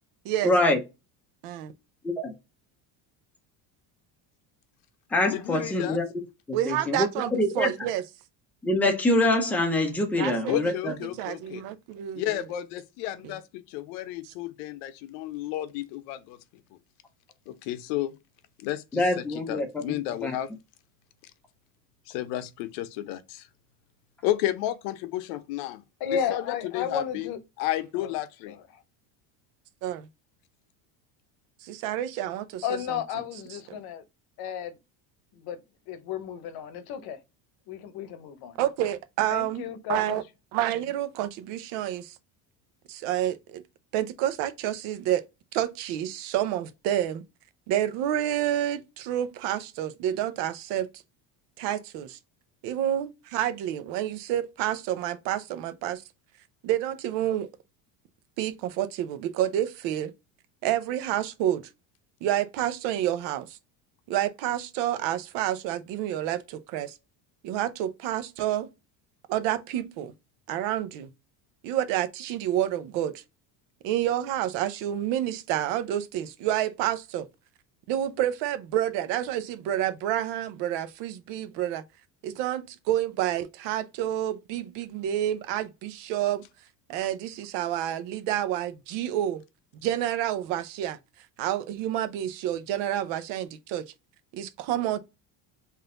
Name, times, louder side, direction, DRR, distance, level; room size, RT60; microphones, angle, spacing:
voice 1, 0.4-0.8 2.0-2.3 5.1-6.2 6.5-7.1 7.4-7.7 8.6-10.9 18.9-19.7 20.2-20.4, left 1 dB, 5° left, 0.5 m, -24 dB
voice 2, 5.3-6.0 10.5-11.6 12.1-16.4 17.5-18.1 18.6-20.5 22.1-23.5 24.2-27.3 27.6-28.6, left 14 dB, 85° left, 0.7 m, -32 dB
voice 3, 6.5-8.0 10.2-10.6 11.2-12.4 13.2-13.3 14.2-14.3 29.8-30.1 31.6-32.6 38.6-39.6 39.9-40.2 40.5-42.2 42.9-43.6 43.9-45.2 45.5-47.2 47.7-50.9 51.6-52.2 52.6-56.0 56.6-57.5 58.4-60.1 60.6-61.7 62.2-63.6 64.1-66.9 67.4-68.7 69.3-70.1 70.5-71.1 71.6-73.2 73.8-77.3 77.9-81.8 82.2-86.4 86.9-89.4 89.8-91.0 91.4-93.8 94.3-95.0, right 12 dB, 70° right, 0.7 m, -29 dB
voice 4, 26.0-27.4 28.0-28.1 28.5-28.8 32.6-34.0 34.4-34.8 35.3-37.2 37.7-38.6 39.3-40.2, left 8 dB, 55° left, 0.8 m, -33 dB
3.8 x 2.7 x 3.7 m
cardioid pair, 165°, 44 cm